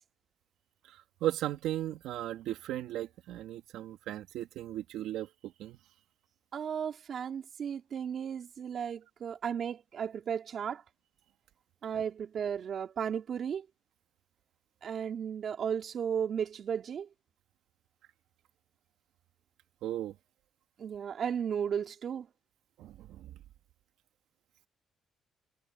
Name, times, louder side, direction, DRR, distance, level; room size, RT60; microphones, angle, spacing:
voice 1, 0.9-5.8 19.8-20.1 22.8-23.4, right 13 dB, 90° right, 3.4 m, -36 dB
voice 2, 6.5-10.8 11.8-13.7 14.8-17.1 20.8-22.3, right 8 dB, 60° right, 3.6 m, -34 dB
cardioid pair, 90°, 0 cm